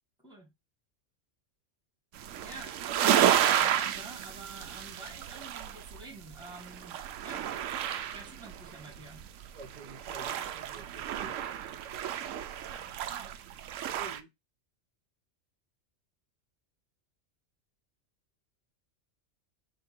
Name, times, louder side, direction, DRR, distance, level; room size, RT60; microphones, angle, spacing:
sound 1, 2.2-14.2, right 10 dB, 80° right, 0.9 m, -31 dB
voice 1, 2.4-7.5 8.1-9.2 12.7-13.4, right 2 dB, 5° right, 1.3 m, -48 dB
voice 2, 9.5-11.4 14.0-14.3, right 3 dB, 35° right, 0.9 m, -49 dB
4.5 x 2.8 x 4.3 m
omnidirectional pair, 1.3 m